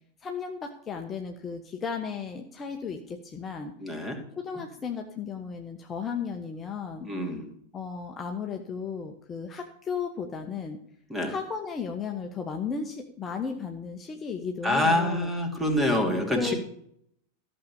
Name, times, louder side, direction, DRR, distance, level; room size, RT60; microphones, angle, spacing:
voice 1, 0.2-3.7 4.4-7.1 7.7-10.8 11.3-15.3 16.3-16.5, left 6 dB, 20° left, 3 dB, 1.1 m, -34 dB
voice 2, 3.8-4.2 7.0-7.4 11.1-11.3 14.6-16.5, left 1 dB, 5° right, 3 dB, 2.7 m, -26 dB
14.0 x 6.5 x 7.1 m, 0.70 s
figure-of-eight pair, 90°, 0 cm